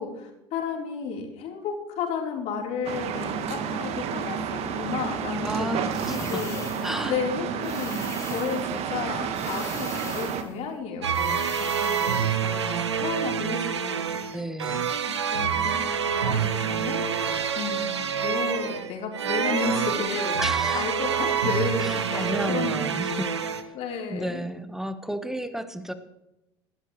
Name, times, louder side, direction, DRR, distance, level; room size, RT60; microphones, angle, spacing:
voice 1, 0.0-5.7 6.1-6.6 7.1-14.2 15.1-17.1 17.6-23.4 23.7-24.4, left 6 dB, 50° left, 0 dB, 3.8 m, -33 dB
sound 1, 2.8-10.4, right 7 dB, 50° right, 1.6 m, -30 dB
voice 2, 5.4-6.5 6.8-7.2 12.7-12.8 14.3-14.9 20.4-20.8 21.8-23.3 23.6-23.8 24.1-25.9, equal, 5° right, 10 dB, 1.3 m, -32 dB
sound 2, 5.9-7.0 7.6-8.7 9.3-10.5 11.1-12.4, left 4 dB, 20° left, 3.5 m, -42 dB
sound 3, 11.0-23.6, right 7 dB, 85° right, 1.0 m, -27 dB
18.5 x 13.0 x 3.2 m, 0.93 s
hypercardioid pair, 75°, 14 cm